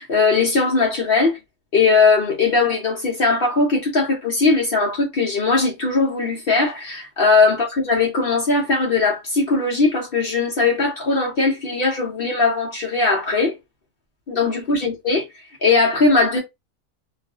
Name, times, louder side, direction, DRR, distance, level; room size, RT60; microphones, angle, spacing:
voice 1, 0.0-1.4 1.7-13.5 14.3-15.2 15.6-16.4, left 3 dB, 55° left, 0.6 m, -19 dB
2.5 x 2.4 x 2.3 m
omnidirectional pair, 1.6 m